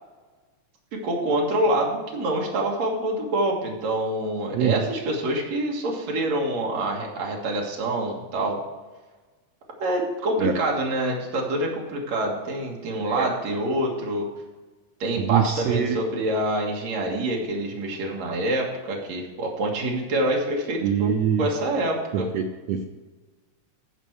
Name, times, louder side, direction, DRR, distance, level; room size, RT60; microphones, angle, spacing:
voice 1, 0.9-8.6 9.8-14.3 15.0-22.3, right 1 dB, 65° right, -1 dB, 3.0 m, -26 dB
voice 2, 4.5-4.9 10.4-10.6 13.0-13.3 15.2-16.0 20.8-21.5 22.1-22.9, right 8 dB, 80° right, 5 dB, 1.5 m, -24 dB
14.5 x 5.2 x 4.7 m, 1.3 s
omnidirectional pair, 3.5 m